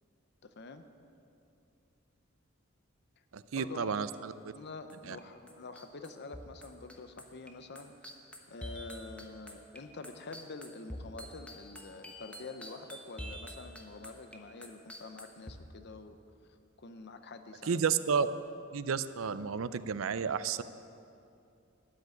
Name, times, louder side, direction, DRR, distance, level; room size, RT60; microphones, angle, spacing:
voice 1, 0.4-0.8 3.5-3.9 4.5-7.9 8.5-16.2 16.8-17.8, left 3 dB, 55° left, 9 dB, 0.7 m, -47 dB
voice 2, 3.3-4.3 5.1-5.2 17.7-18.3 18.7-20.6, right 6 dB, 85° right, 14 dB, 0.5 m, -31 dB
sound 1, 4.9-5.2 5.5-15.5, equal, 5° left, 1.1 m, -47 dB
13.0 x 6.8 x 9.8 m, 2.6 s
head